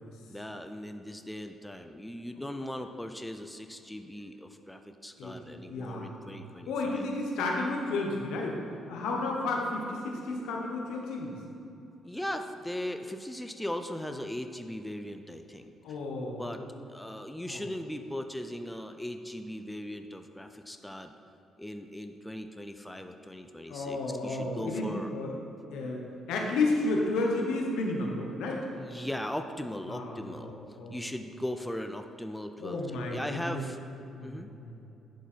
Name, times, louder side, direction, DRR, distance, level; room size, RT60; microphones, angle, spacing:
voice 1, 0.3-7.1 12.0-15.7 16.3-16.6 16.9-21.1 21.6-25.1 28.8-33.8 34.2-34.5, left 1 dB, 5° left, 7 dB, 0.4 m, -39 dB
voice 2, 5.2-6.3 6.6-8.6 8.9-11.4 15.8-16.7 17.5-17.6 23.7-25.3 25.7-28.6 29.9-31.1 32.6-33.6 34.1-34.8, left 2 dB, 90° left, 0 dB, 1.2 m, -32 dB
10.5 x 4.6 x 4.5 m, 2.8 s
cardioid pair, 90°, 0 cm